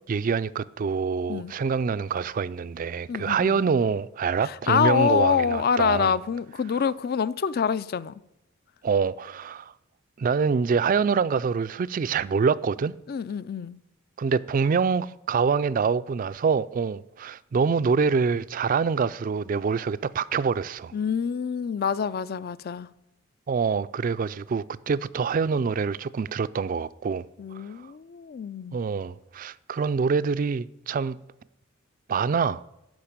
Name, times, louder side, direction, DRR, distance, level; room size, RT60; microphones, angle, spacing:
voice 1, 0.1-6.1 8.8-9.7 10.2-12.9 14.2-20.9 23.5-27.3 27.5-27.7 28.7-31.2 32.1-32.6, right 5 dB, 40° right, 0.3 m, -25 dB
voice 2, 3.1-3.6 4.4-8.1 13.1-13.8 20.9-22.9 27.4-28.8, left 7 dB, 45° left, 0.4 m, -26 dB
12.5 x 5.2 x 8.7 m
head